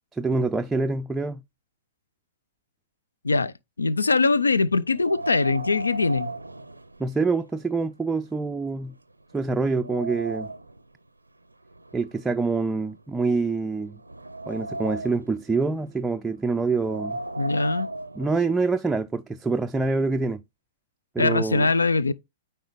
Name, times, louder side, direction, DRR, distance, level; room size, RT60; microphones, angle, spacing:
voice 1, 0.1-1.4 7.0-8.9 9.3-10.5 11.9-14.0 14.5-17.2 18.2-20.4 21.1-21.7, right 3 dB, 10° right, 0.4 m, -26 dB
voice 2, 3.8-6.3 17.4-17.9 21.2-22.1, left 3 dB, 80° left, 0.4 m, -22 dB
Wind, 4.9-7.5 7.8-7.9 8.6-8.7 9.2-10.8 11.7-13.2 13.8-15.4 16.6-18.8, right 2 dB, 85° right, 0.5 m, -36 dB
9.1 x 4.3 x 3.4 m
figure-of-eight pair, 110°, 0 cm